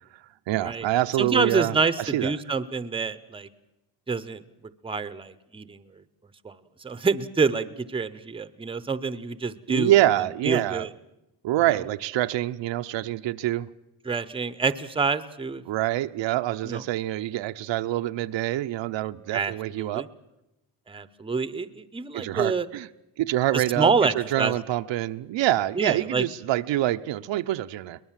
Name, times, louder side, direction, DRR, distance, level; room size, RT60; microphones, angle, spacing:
voice 1, 0.5-2.3 9.7-10.9 11.4-13.7 15.7-20.1 22.1-22.9 23.2-28.0, right 14 dB, 75° right, 0.8 m, -26 dB
voice 2, 1.2-3.5 4.1-4.4 4.8-5.8 6.4-6.5 6.8-9.9 10.4-10.9 14.0-15.6 16.6-16.8 19.3-20.1 20.9-22.7 23.5-24.5 25.8-26.2, right 4 dB, 10° right, 0.7 m, -27 dB
23.0 x 20.0 x 7.4 m
cardioid pair, 135°, 44 cm